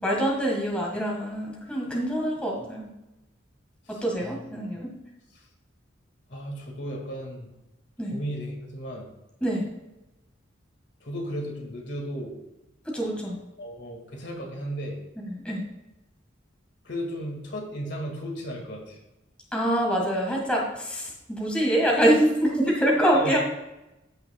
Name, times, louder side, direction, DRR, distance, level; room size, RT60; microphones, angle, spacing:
voice 1, 0.0-2.9 4.0-4.9 8.0-8.1 9.4-9.6 12.9-13.4 15.3-15.6 19.5-23.4, right 1 dB, 5° left, -2 dB, 1.5 m, -25 dB
voice 2, 3.8-4.4 5.3-5.5 6.3-7.5 8.1-9.1 11.0-12.4 13.6-15.0 16.8-19.0 23.1-23.3, equal, 60° left, 1 dB, 1.9 m, -35 dB
15.0 x 5.6 x 2.3 m, 0.96 s
head